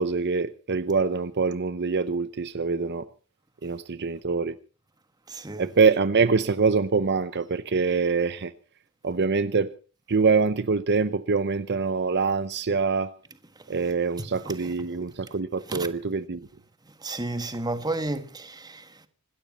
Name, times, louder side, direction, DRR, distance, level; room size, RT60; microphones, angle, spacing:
voice 1, 0.0-3.0 3.6-4.5 5.6-8.5 9.0-9.7 10.1-13.1 13.7-16.5, right 4 dB, 50° right, 0.7 m, -24 dB
voice 2, 5.3-5.7 14.2-14.7 15.7-15.9 17.0-19.1, right 2 dB, 20° right, 1.5 m, -32 dB
26.0 x 12.5 x 4.1 m
head